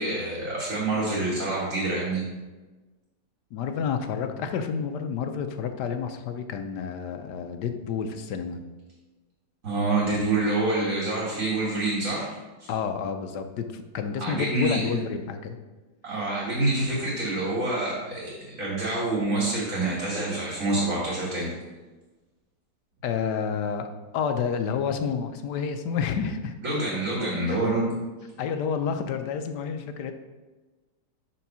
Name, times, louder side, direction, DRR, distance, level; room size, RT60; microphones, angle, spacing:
voice 1, 0.0-2.2 9.6-12.3 12.6-12.7 14.2-14.8 16.0-21.5 26.6-27.9, right 2 dB, 45° right, -7 dB, 2.2 m, -27 dB
voice 2, 3.5-8.6 12.7-15.6 23.0-23.9 24.1-26.5 27.5-27.7 28.4-30.1, left 6 dB, 70° left, 7 dB, 1.2 m, -29 dB
5.8 x 5.4 x 6.0 m, 1.2 s
omnidirectional pair, 1.9 m